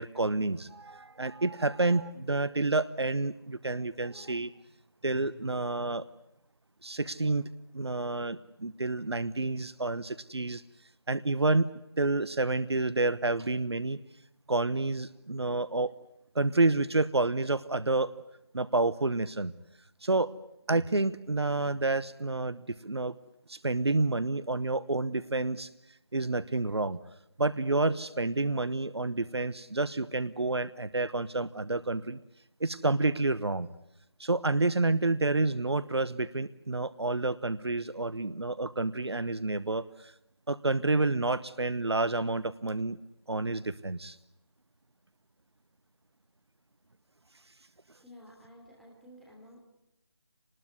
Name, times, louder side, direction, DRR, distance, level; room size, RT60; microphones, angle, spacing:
voice 1, 0.0-4.5 5.0-6.1 6.8-7.5 7.7-10.6 11.1-11.7 12.0-14.0 14.5-15.9 16.3-18.1 18.5-19.5 20.0-20.3 20.7-23.1 23.5-25.7 26.1-27.0 27.4-32.2 32.6-33.7 34.2-40.1 40.5-43.0 43.3-44.2, right 2 dB, 85° right, 17 dB, 1.0 m, -29 dB
voice 2, 48.0-49.6, left 1 dB, ahead, -4 dB, 3.2 m, -52 dB
24.5 x 20.0 x 9.6 m, 0.85 s
figure-of-eight pair, 165°, 13 cm